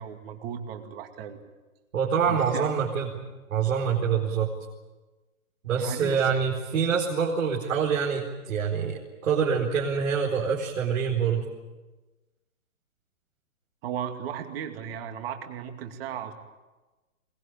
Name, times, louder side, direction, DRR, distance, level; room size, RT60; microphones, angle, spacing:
voice 1, 0.0-1.4 2.3-2.7 5.8-6.3 13.8-16.3, right 9 dB, 40° right, 5 dB, 2.4 m, -36 dB
voice 2, 1.9-3.2 3.5-4.5 5.6-11.4, right 6 dB, 65° right, -3 dB, 4.6 m, -26 dB
22.0 x 20.5 x 9.0 m, 1.2 s
hypercardioid pair, 150°, 43 cm